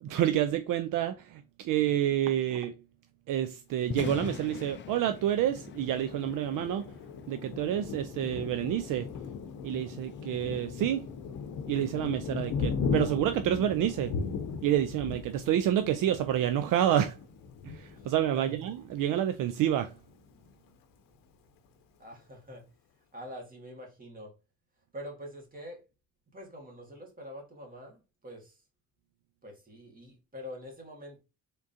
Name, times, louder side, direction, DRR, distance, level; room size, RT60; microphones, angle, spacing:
voice 1, 0.0-2.7 3.3-6.9 7.3-9.1 9.6-11.0 11.7-14.1 14.6-17.2 17.6-19.9, right 11 dB, 65° right, 0.5 m, -28 dB
Thunder, 3.7-17.9, left 7 dB, 35° left, 0.4 m, -47 dB
Thunder 2, 4.8-19.1 19.6-19.8 20.1-20.7, left 5 dB, 70° left, 0.7 m, -38 dB
voice 2, 18.0-18.5 22.0-22.6 23.0-24.3 24.9-25.8 26.3-28.6 29.4-31.2, equal, 25° right, 1.7 m, -45 dB
3.7 x 3.6 x 2.7 m
cardioid pair, 100°, 34 cm